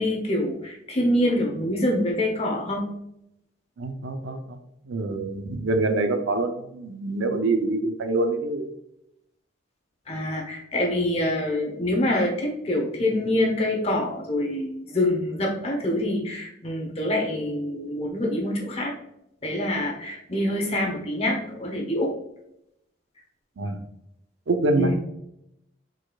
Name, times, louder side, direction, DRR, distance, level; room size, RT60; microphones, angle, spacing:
voice 1, 0.0-2.9 10.1-18.9 19.4-22.1 24.8-24.9, left 1 dB, 30° left, 0 dB, 0.8 m, -25 dB
voice 2, 3.8-4.6 4.8-8.7 23.6-23.8 24.5-24.9, right 2 dB, 85° right, 7 dB, 0.5 m, -25 dB
4.8 x 4.2 x 2.3 m, 0.82 s
head